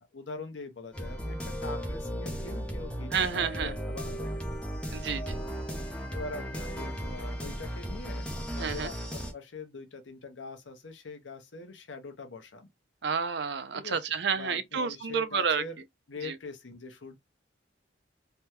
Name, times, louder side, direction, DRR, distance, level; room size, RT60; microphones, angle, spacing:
voice 1, 0.1-4.5 6.1-12.7 13.7-14.0 14.3-15.8 16.1-17.2, left 3 dB, 75° left, 0.8 m, -43 dB
sound 1, 0.9-9.3, equal, 5° left, 0.6 m, -36 dB
voice 2, 3.1-3.7 4.9-5.4 8.6-8.9 13.0-15.6 16.2-16.4, right 6 dB, 60° right, 0.5 m, -30 dB
3.4 x 2.2 x 2.9 m
head